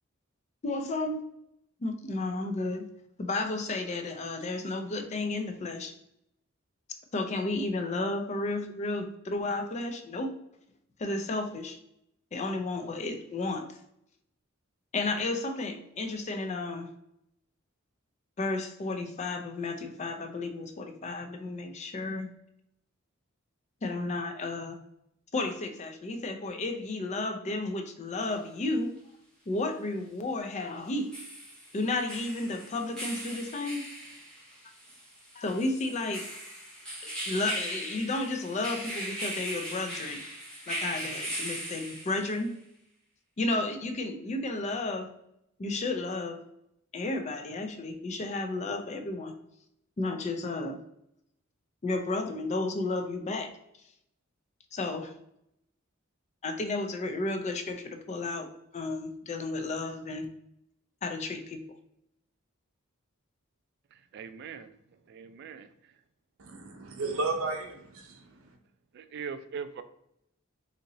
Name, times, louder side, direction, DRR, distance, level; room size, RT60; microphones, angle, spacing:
voice 1, 0.6-1.2 1.8-2.9 3.2-5.9 7.1-10.3 11.0-11.8 12.3-13.8 14.9-16.9 18.4-22.3 23.8-24.8 25.3-28.9 29.5-31.1 31.7-33.9 35.4-36.3 37.0-40.2 40.7-42.5 43.4-45.1 45.6-46.4 46.9-49.3 50.0-50.8 51.8-53.5 54.7-55.1 56.4-60.3 61.0-61.6, left 2 dB, 35° left, 6 dB, 0.4 m, -32 dB
sound 1, 28.2-28.3 30.8-42.4, right 1 dB, 5° left, 1.2 m, -39 dB
voice 2, 63.9-64.7 65.1-65.9 68.9-69.8, right 6 dB, 55° right, 11 dB, 0.3 m, -41 dB
voice 3, 66.4-68.5, right 3 dB, 80° right, 3 dB, 0.7 m, -34 dB
2.8 x 2.7 x 3.8 m, 0.77 s
head